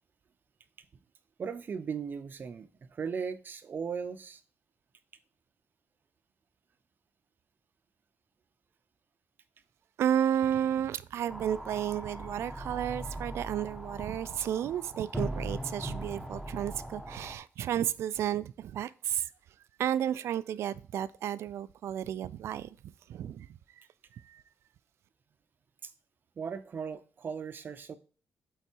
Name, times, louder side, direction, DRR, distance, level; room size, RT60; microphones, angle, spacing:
voice 1, 1.4-4.4 25.8-25.9 26.4-27.9, right 6 dB, 50° right, 0.7 m, -37 dB
voice 2, 10.0-19.3 19.8-23.5 23.8-23.9 24.1-24.4, right 10 dB, 80° right, 0.4 m, -32 dB
sound 1, 11.3-17.4, equal, ahead, 1.0 m, -39 dB
8.1 x 4.0 x 4.4 m
cardioid pair, 95°, 5 cm